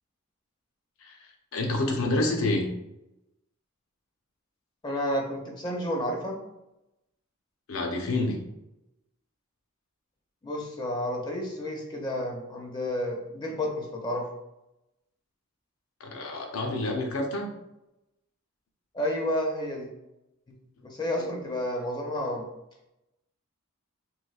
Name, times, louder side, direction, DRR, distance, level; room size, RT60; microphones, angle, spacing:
voice 1, 1.0-2.7 7.7-8.4 16.0-17.5 21.1-21.3, left 2 dB, 75° left, 3 dB, 0.6 m, -28 dB
voice 2, 4.8-6.4 10.4-14.3 18.9-19.9 20.5-20.6 20.8-22.5, left 1 dB, 20° left, 0 dB, 0.4 m, -31 dB
3.1 x 2.9 x 2.3 m, 0.90 s
head